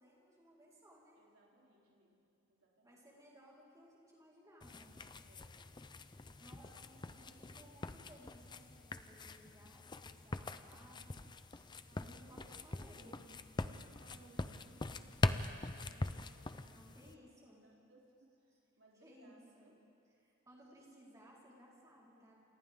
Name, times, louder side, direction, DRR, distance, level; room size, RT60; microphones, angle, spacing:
voice 1, 0.0-1.2 2.8-4.9 6.4-11.2 11.5-13.2 16.7-17.6 18.9-19.7 20.2-22.4, equal, 15° right, -6 dB, 4.4 m, -61 dB
voice 2, 1.1-2.2 2.5-3.0 5.2-5.5 6.6-6.9 7.2-7.7 11.9-13.2 13.6-16.8 17.2-19.8, right 2 dB, 85° right, -3 dB, 3.6 m, -66 dB
sound 1, 4.6-17.1, left 2 dB, 20° left, 0.5 m, -43 dB
28.0 x 28.0 x 3.7 m, 2.5 s
head